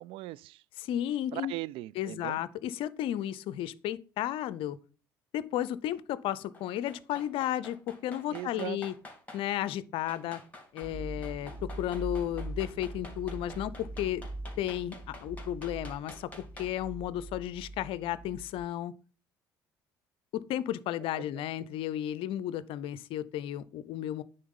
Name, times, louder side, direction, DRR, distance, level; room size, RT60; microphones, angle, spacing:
voice 1, 0.0-0.6 1.3-2.4 8.3-8.8 21.2-21.3, right 17 dB, 65° right, 0.4 m, -39 dB
voice 2, 0.8-1.5 2.0-4.8 5.3-8.9 9.3-10.4 10.7-14.2 14.6-18.9 20.3-24.2, left 12 dB, 65° left, 0.5 m, -33 dB
sound 1, 6.5-9.4 10.1-11.0 11.2-16.9 17.2-17.3, left 2 dB, 15° left, 2.9 m, -49 dB
sound 2, 10.8-18.7, right 1 dB, 25° right, 0.8 m, -42 dB
9.3 x 3.9 x 5.5 m
hypercardioid pair, 60°, 10 cm